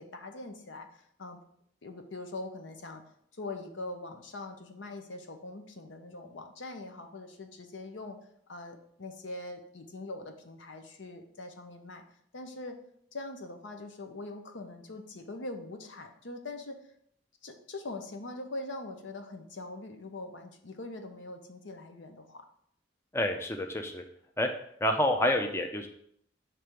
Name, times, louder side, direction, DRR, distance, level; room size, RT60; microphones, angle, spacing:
voice 1, 0.0-1.4 1.8-3.0 3.3-8.2 8.5-12.0 12.3-12.8 13.1-16.8 17.4-22.4, left 2 dB, 75° left, 6 dB, 0.8 m, -42 dB
voice 2, 23.1-24.0 24.4-24.5 24.8-25.9, left 1 dB, 15° left, 4 dB, 0.5 m, -28 dB
6.1 x 3.3 x 5.1 m, 0.69 s
head